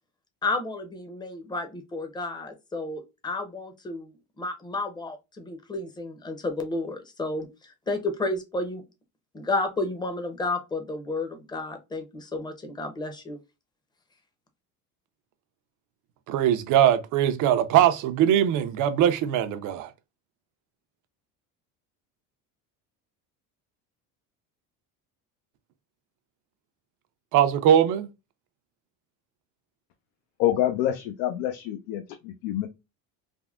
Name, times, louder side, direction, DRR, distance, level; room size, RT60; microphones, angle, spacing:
voice 1, 0.4-8.8 9.3-13.4, left 2 dB, 10° left, 0.6 m, -32 dB
voice 2, 16.3-19.9 27.3-28.1, right 10 dB, 55° right, 0.5 m, -21 dB
voice 3, 30.4-32.7, left 12 dB, 85° left, 0.6 m, -27 dB
3.5 x 2.0 x 2.3 m
cardioid pair, 120°, 37 cm